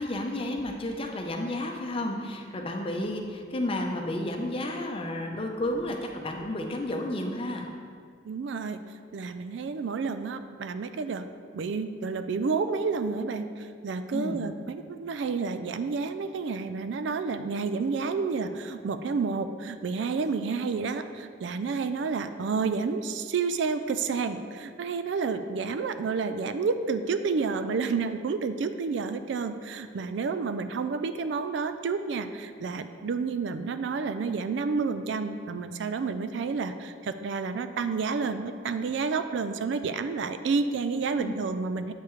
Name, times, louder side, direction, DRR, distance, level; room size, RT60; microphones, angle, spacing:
voice 1, 0.0-7.7 14.1-14.4 41.2-41.4, left 1 dB, 30° left, 2 dB, 0.6 m, -32 dB
voice 2, 8.2-8.8 9.1-11.2 11.5-41.9, right 4 dB, 65° right, 10 dB, 0.4 m, -30 dB
8.2 x 6.7 x 3.1 m, 2.2 s
head